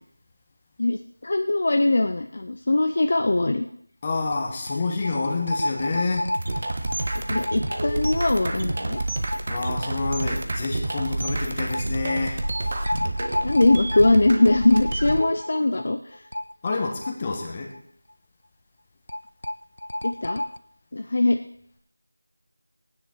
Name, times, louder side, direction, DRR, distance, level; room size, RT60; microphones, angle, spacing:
voice 1, 0.8-3.6 7.3-9.0 13.4-16.2 20.0-20.4 20.9-21.4, left 2 dB, 40° left, 6 dB, 0.7 m, -21 dB
sound 1, 3.0-3.1 3.3-3.4 4.3-10.1 10.4-10.5 11.7-17.8 18.1-18.2 19.1-20.6, left 1 dB, 85° left, 0.5 m, -32 dB
voice 2, 4.0-6.3 9.5-12.4 16.6-17.7, left 3 dB, 20° left, 1 dB, 1.6 m, -28 dB
sound 2, 6.3-15.2, right 2 dB, 40° right, 1.2 m, -29 dB
15.5 x 10.0 x 4.7 m, 0.69 s
figure-of-eight pair, 175°, 0 cm